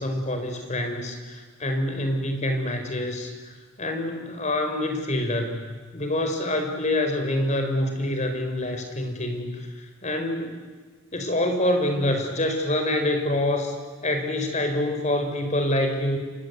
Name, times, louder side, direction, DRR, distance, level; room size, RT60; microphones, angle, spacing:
voice 1, 0.0-9.7 10.0-10.5 11.1-13.7 14.0-16.2, left 1 dB, 35° left, 5 dB, 4.6 m, -26 dB
29.5 x 24.5 x 8.2 m, 1.4 s
head